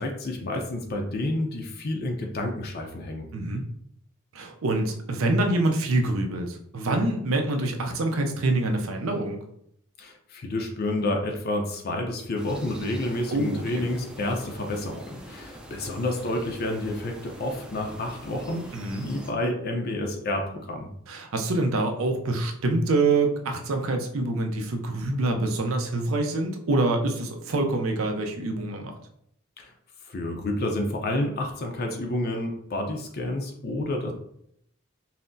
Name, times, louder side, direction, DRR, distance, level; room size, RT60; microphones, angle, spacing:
voice 1, 0.0-3.3 10.0-18.7 19.0-20.9 29.6-29.7 30.0-34.1, left 1 dB, 50° left, 2 dB, 0.5 m, -29 dB
voice 2, 3.3-3.6 4.3-9.4 13.3-13.9 18.7-19.1 21.1-28.9, right 2 dB, 75° right, 4 dB, 0.6 m, -26 dB
sound 1, 12.4-19.3, right 1 dB, 5° right, 0.4 m, -44 dB
5.6 x 2.0 x 2.6 m, 0.71 s
head